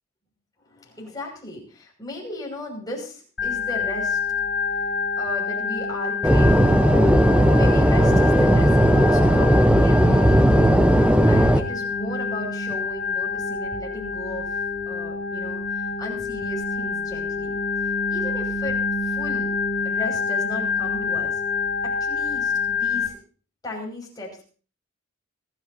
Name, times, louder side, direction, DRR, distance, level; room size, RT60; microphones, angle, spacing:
voice 1, 0.6-4.2 5.2-7.0 7.5-10.6 11.3-14.6 14.9-17.6 18.1-19.5 19.8-21.4 21.8-23.2 23.6-24.4, left 1 dB, 20° left, -2 dB, 6.0 m, -36 dB
Organ, 3.4-23.1, left 5 dB, 60° left, 6.4 m, -27 dB
sound 1, 6.2-11.6, equal, 5° right, 0.9 m, -16 dB
25.5 x 13.5 x 2.8 m, 0.40 s
head